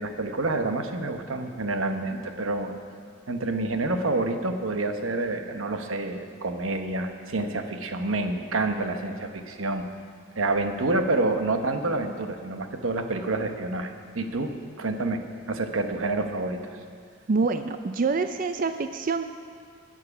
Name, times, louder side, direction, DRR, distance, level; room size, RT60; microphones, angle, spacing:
voice 1, 0.0-2.8 3.3-9.8 10.4-14.5 14.8-15.2 15.5-16.6, right 2 dB, 80° right, 6 dB, 1.0 m, -28 dB
voice 2, 17.3-19.2, right 4 dB, 40° right, 9 dB, 0.4 m, -26 dB
16.5 x 7.5 x 5.9 m, 2.1 s
head